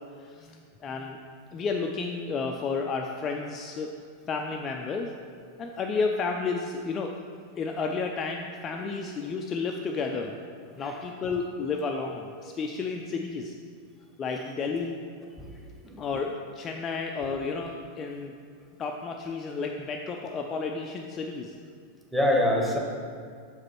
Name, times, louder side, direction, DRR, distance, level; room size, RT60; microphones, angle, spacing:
voice 1, 0.2-1.2 1.5-3.9 4.3-5.2 5.6-7.2 7.6-10.3 10.8-13.5 14.2-15.0 16.0-18.3 18.8-21.5, left 4 dB, 25° left, 2 dB, 0.4 m, -32 dB
voice 2, 22.1-22.8, left 1 dB, ahead, -1 dB, 1.0 m, -25 dB
6.1 x 5.0 x 4.4 m, 2.1 s
figure-of-eight pair, 90°, 0 cm